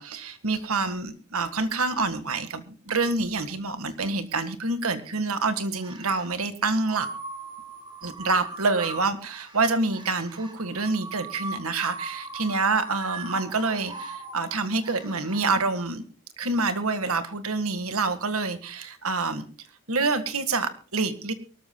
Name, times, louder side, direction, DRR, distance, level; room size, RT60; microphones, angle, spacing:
voice 1, 0.0-7.1 8.0-16.0 16.4-19.4 19.9-21.3, right 3 dB, 90° right, 10 dB, 1.7 m, -27 dB
sound 1, 5.8-6.4 6.9-15.5, right 3 dB, 20° right, 2.2 m, -39 dB
23.5 x 13.5 x 2.3 m, 0.40 s
head